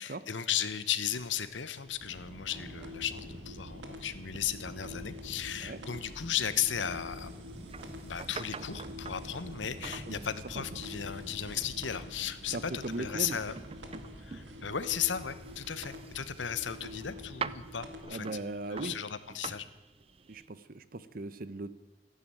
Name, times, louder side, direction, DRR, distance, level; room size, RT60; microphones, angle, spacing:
voice 1, 0.0-7.3 8.0-13.6 14.2-18.3 18.7-19.7, left 9 dB, 85° left, 13 dB, 1.0 m, -35 dB
sound 1, 1.1-14.4, equal, 5° left, 3.8 m, -62 dB
sound 2, 1.5-20.5, right 5 dB, 30° right, 0.5 m, -48 dB
sound 3, 2.0-18.0, left 1 dB, 70° right, 2.3 m, -45 dB
voice 2, 12.5-13.4 18.1-19.0 20.3-21.8, right 2 dB, 50° right, 14 dB, 0.8 m, -39 dB
14.5 x 11.0 x 9.1 m, 1.2 s
head